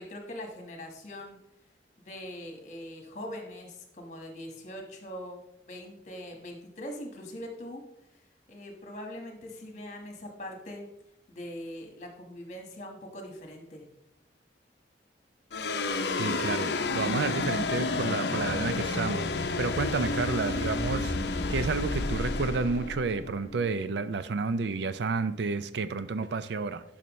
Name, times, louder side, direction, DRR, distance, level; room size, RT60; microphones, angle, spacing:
voice 1, 0.0-1.4 2.0-5.4 5.7-7.8 8.1-8.2 8.5-10.9 11.3-13.9, left 1 dB, 40° left, 1.4 m, -42 dB
sound 1, 15.5-24.0, left 3 dB, 65° left, 0.6 m, -30 dB
voice 2, 16.2-19.3 19.6-21.2 21.5-26.8, right 4 dB, 70° right, 0.4 m, -30 dB
11.0 x 5.8 x 3.1 m
head